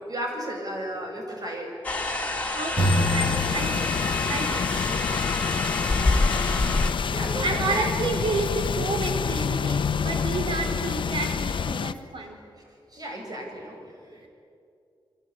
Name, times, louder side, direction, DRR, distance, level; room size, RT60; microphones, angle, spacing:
voice 1, 0.0-1.7 7.1-8.0 12.9-14.3, right 1 dB, 45° right, 1 dB, 7.6 m, -34 dB
sound 1, 1.8-6.9, left 2 dB, 15° left, 3.4 m, -27 dB
voice 2, 2.5-4.0 4.3-4.7 7.2-12.4 14.2-14.3, right 3 dB, 80° right, 4 dB, 4.3 m, -30 dB
sound 2, 2.8-11.9, left 6 dB, 70° left, 0.9 m, -28 dB
sound 3, 2.8-4.6, equal, 10° right, 3.8 m, -26 dB
27.5 x 24.0 x 8.9 m, 2.5 s
wide cardioid pair, 115°, 9 cm